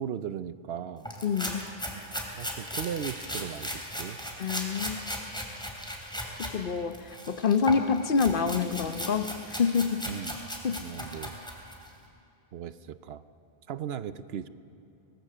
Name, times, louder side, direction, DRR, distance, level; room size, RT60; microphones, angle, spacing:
voice 1, 0.0-1.1 2.3-4.2 10.1-10.4 10.8-11.3 12.5-13.2 13.7-14.5, right 8 dB, 75° right, 14 dB, 0.9 m, -37 dB
sound 1, 1.0-6.5 6.9-11.9, equal, 5° left, 2.9 m, -37 dB
voice 2, 1.2-1.7 4.4-5.1 6.4-10.1 10.6-10.8, left 5 dB, 55° left, 10 dB, 1.0 m, -27 dB
24.0 x 18.5 x 6.7 m, 2.6 s
omnidirectional pair, 1.1 m